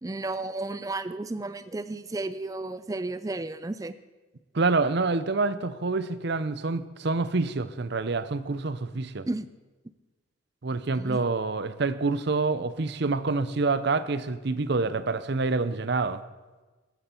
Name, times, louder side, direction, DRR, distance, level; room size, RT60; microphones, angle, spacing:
voice 1, 0.0-3.9 9.3-9.5 10.9-11.2, right 2 dB, 15° right, 13 dB, 0.4 m, -33 dB
voice 2, 4.5-9.3 10.6-16.2, right 3 dB, 55° right, 14 dB, 0.6 m, -27 dB
14.0 x 12.5 x 4.5 m, 1.3 s
head